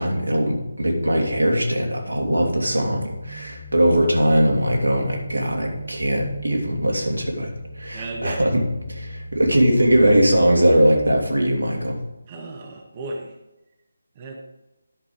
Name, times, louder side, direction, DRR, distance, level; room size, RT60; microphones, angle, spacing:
voice 1, 0.0-7.5 7.8-12.0, equal, 85° right, 0 dB, 2.6 m, -20 dB
sound 1, 2.1-11.3, equal, ahead, 1.0 m, -38 dB
voice 2, 7.9-8.5 12.3-13.3 14.2-14.4, right 2 dB, 30° right, 2 dB, 1.1 m, -34 dB
10.5 x 5.5 x 5.0 m, 0.97 s
figure-of-eight pair, 155°, 0 cm